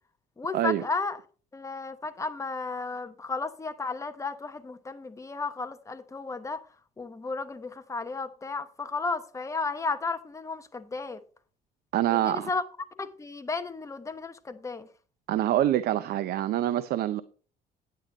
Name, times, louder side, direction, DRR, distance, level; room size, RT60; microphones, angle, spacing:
voice 1, 0.4-1.2 1.5-6.6 7.0-11.2 12.1-12.6 13.0-14.9, left 4 dB, 20° left, 1.1 m, -33 dB
voice 2, 11.9-12.5 15.3-17.2, right 12 dB, 65° right, 0.7 m, -25 dB
9.4 x 9.1 x 3.9 m
cardioid pair, 110°, 17 cm